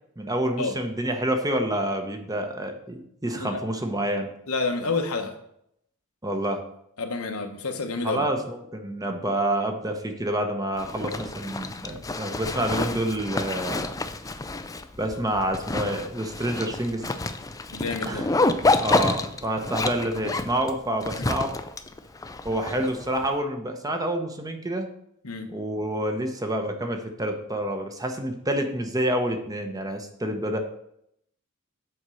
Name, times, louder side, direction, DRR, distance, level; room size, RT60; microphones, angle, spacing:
voice 1, 0.2-4.3 6.2-6.6 8.0-13.9 15.0-17.1 18.1-18.3 18.8-21.5 22.4-24.9 25.5-30.6, right 1 dB, 15° right, 5 dB, 0.9 m, -28 dB
voice 2, 4.5-5.3 7.0-8.2 17.7-18.2 25.2-25.5, left 3 dB, 85° left, 5 dB, 1.1 m, -29 dB
Zipper (clothing), 10.8-23.3, left 2 dB, 15° left, 0.4 m, -29 dB
7.9 x 4.4 x 6.3 m, 0.75 s
head